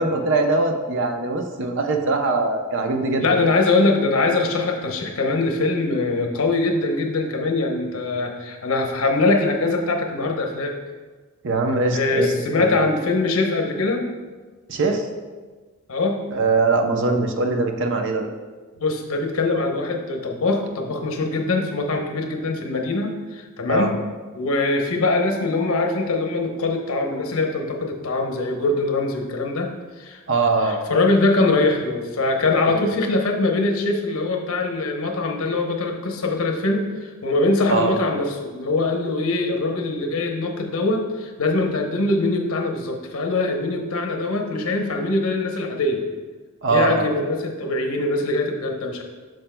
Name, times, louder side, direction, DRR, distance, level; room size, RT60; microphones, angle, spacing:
voice 1, 0.0-3.5 11.4-12.8 14.7-15.0 16.3-18.3 23.7-23.9 30.3-30.8 32.7-32.8 37.7-37.9 46.6-47.1, right 3 dB, 60° right, 5 dB, 0.7 m, -22 dB
voice 2, 3.2-10.7 11.9-14.0 15.9-16.2 18.8-24.0 24.3-29.7 30.0-30.2 30.6-46.0 46.7-49.0, left 2 dB, 70° left, 3 dB, 0.9 m, -22 dB
8.7 x 6.4 x 2.2 m, 1.4 s
head